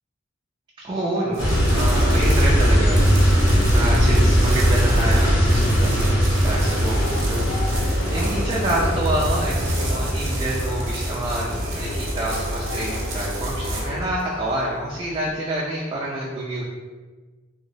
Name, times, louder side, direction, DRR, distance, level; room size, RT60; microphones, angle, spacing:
voice 1, 0.8-16.7, right 1 dB, 25° right, -6 dB, 0.4 m, -27 dB
sound 1, 1.3-15.3, right 3 dB, 85° right, 0.7 m, -36 dB
sound 2, 1.4-11.5, equal, 70° left, 1.0 m, -20 dB
sound 3, 6.5-14.0, left 1 dB, 85° left, 0.5 m, -29 dB
3.0 x 2.8 x 2.6 m, 1.4 s
head